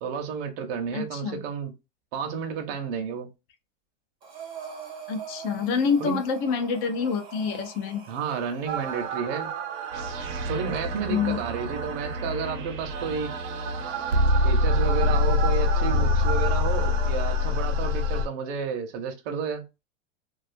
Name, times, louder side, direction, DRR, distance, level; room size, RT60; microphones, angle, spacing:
voice 1, 0.0-1.7 2.1-3.3 6.0-6.2 8.1-9.5 10.5-13.3 14.4-19.6, right 6 dB, 55° right, 0.7 m, -31 dB
voice 2, 0.9-1.4 5.1-8.0 11.1-11.4, left 6 dB, 40° left, 0.5 m, -27 dB
Breathing, 4.2-9.1, right 6 dB, 15° right, 0.4 m, -43 dB
sound 1, 8.7-18.3, left 1 dB, 85° right, 0.8 m, -25 dB
2.5 x 2.4 x 2.5 m
supercardioid pair, 155°, 36 cm